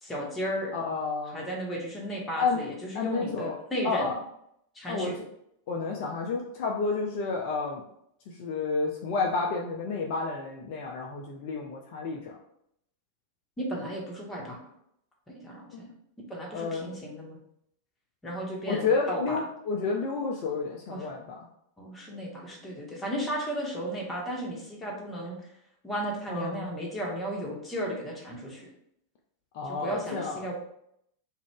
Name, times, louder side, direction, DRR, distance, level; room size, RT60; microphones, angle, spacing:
voice 1, 0.0-0.7 1.3-4.1 4.7-5.1 13.6-14.6 15.3-15.9 16.3-17.4 18.2-19.4 20.9-21.1 21.8-25.5 25.8-28.7 29.6-30.5, right 1 dB, 15° left, -2 dB, 0.9 m, -34 dB
voice 2, 0.7-1.4 2.4-2.6 2.9-3.6 3.8-4.1 4.9-5.1 5.7-7.8 8.4-12.3 15.7-15.8 16.5-16.9 18.7-21.2 26.3-26.7 29.5-30.5, left 4 dB, 45° left, 0 dB, 0.4 m, -30 dB
2.4 x 2.1 x 3.4 m, 0.74 s
figure-of-eight pair, 90°, 0 cm